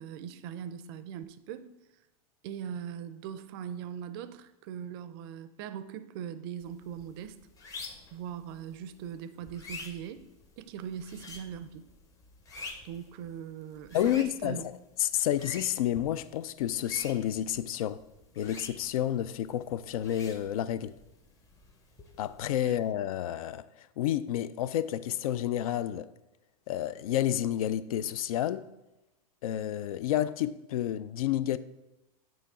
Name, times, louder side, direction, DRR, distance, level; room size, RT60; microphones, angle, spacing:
voice 1, 0.0-1.7 2.4-7.4 8.1-10.2 10.6-11.9 12.8-14.6 22.6-22.7, right 8 dB, 40° right, 0.4 m, -40 dB
sound 1, 6.6-22.9, left 3 dB, 20° left, 0.7 m, -49 dB
voice 2, 13.9-14.6 15.0-18.0 18.4-20.9 22.2-26.1 26.7-28.7 29.4-31.6, left 11 dB, 75° left, 0.4 m, -30 dB
9.0 x 3.1 x 4.8 m
supercardioid pair, 160°, 18 cm